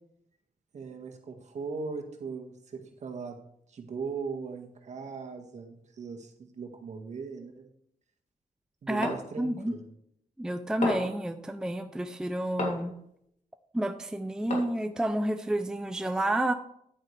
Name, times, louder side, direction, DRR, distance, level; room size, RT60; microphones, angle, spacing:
voice 1, 0.7-3.4 3.7-7.7 8.8-9.8, right 5 dB, 55° right, 3 dB, 1.8 m, -39 dB
sound 1, 9.0-9.3 10.8-11.2 12.6-13.0 14.5-14.9, left 2 dB, 60° left, 2.9 m, -32 dB
voice 2, 9.4-9.7 10.4-12.9 13.7-16.5, right 1 dB, 5° right, 8 dB, 0.5 m, -30 dB
10.5 x 9.0 x 3.4 m, 0.71 s
wide cardioid pair, 160°, 14 cm